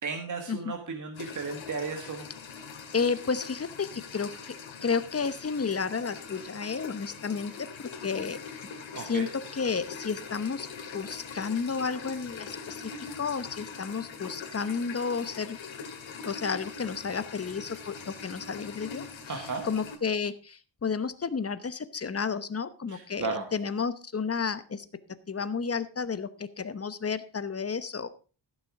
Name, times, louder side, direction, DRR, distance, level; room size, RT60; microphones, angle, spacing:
voice 1, 0.0-2.3 8.9-9.3 19.3-19.6 22.9-23.4, right 4 dB, 40° right, 4 dB, 1.6 m, -34 dB
sound 1, 1.1-20.0, left 5 dB, 85° left, 2.4 m, -42 dB
voice 2, 2.9-4.5 4.8-7.5 7.8-8.4 9.0-10.7 10.9-12.9 13.2-15.6 16.2-24.8 25.3-28.1, left 5 dB, 30° left, 13 dB, 0.9 m, -32 dB
15.0 x 6.8 x 4.9 m, 0.35 s
wide cardioid pair, 140°, 46 cm